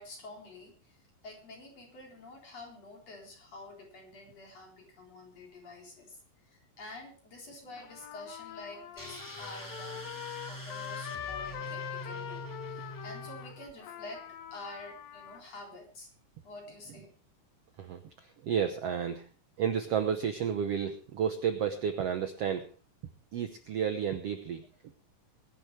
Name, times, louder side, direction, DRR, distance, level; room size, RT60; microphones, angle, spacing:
voice 1, 0.0-10.1 10.5-16.1 16.4-17.1, left 2 dB, 45° left, 0 dB, 5.0 m, -48 dB
Trumpet, 7.8-15.4, left 10 dB, 90° left, 3.0 m, -43 dB
sound 1, 9.0-13.7, equal, 10° left, 1.2 m, -44 dB
voice 2, 17.8-19.3 19.6-22.7 23.3-24.6, right 8 dB, 65° right, 7 dB, 1.6 m, -31 dB
22.0 x 11.5 x 3.3 m, 0.37 s
omnidirectional pair, 4.0 m